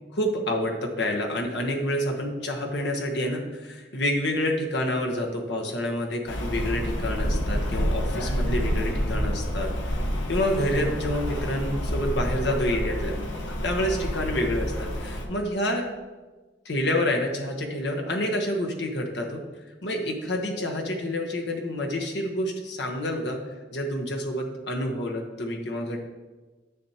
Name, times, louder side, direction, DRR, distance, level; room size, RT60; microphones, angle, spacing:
voice 1, 0.1-9.7 10.3-13.1 13.6-15.9 16.6-19.4 19.8-23.4 23.7-26.0, left 1 dB, 65° left, 1 dB, 1.2 m, -28 dB
Rain, 6.3-15.2, equal, 85° left, 1.1 m, -28 dB
10.0 x 6.9 x 2.9 m, 1.3 s
head